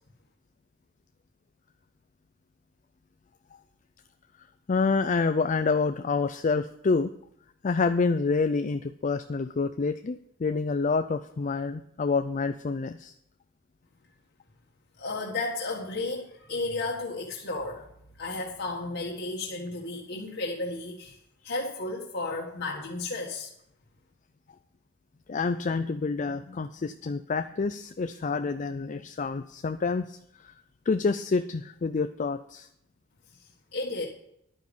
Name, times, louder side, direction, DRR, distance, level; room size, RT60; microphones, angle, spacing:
voice 1, 4.7-7.1 7.6-13.1 25.3-30.5 30.9-32.7, left 4 dB, 35° left, 9 dB, 0.4 m, -28 dB
voice 2, 15.0-17.8 18.2-21.2 21.4-23.5 33.7-34.1, left 2 dB, 55° left, -3 dB, 1.7 m, -33 dB
11.0 x 9.3 x 5.3 m, 0.73 s
head